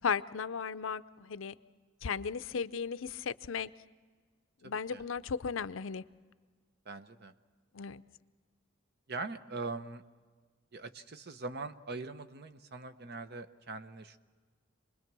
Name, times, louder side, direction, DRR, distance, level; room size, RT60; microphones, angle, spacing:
voice 1, 0.0-1.6 2.0-3.7 4.6-6.0 7.7-8.0, left 6 dB, 75° left, 14 dB, 0.6 m, -35 dB
voice 2, 4.6-5.0 6.8-7.3 9.1-10.0 10.7-14.2, right 3 dB, 55° right, 10 dB, 0.9 m, -42 dB
27.5 x 21.0 x 6.1 m, 1.5 s
head